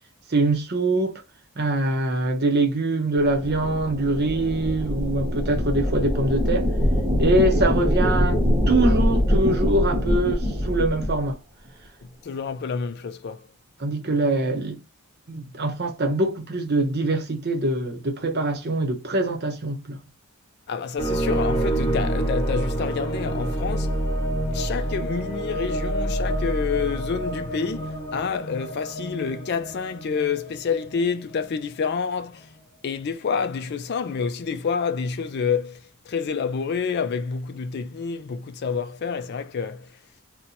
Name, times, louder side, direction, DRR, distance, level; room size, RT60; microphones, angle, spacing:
voice 1, 0.3-1.2 1.6-6.7 7.2-8.4 8.7-11.4 13.8-14.8 15.3-20.0, right 2 dB, 45° right, 0.8 m, -23 dB
sound 1, 3.2-11.2, equal, 15° right, 0.8 m, -23 dB
voice 2, 12.0-13.5 20.7-24.0 24.5-32.5 32.8-40.0, left 5 dB, 45° left, 0.3 m, -28 dB
sound 2, 21.0-32.0, right 1 dB, 15° left, 1.1 m, -28 dB
2.8 x 2.1 x 3.9 m
head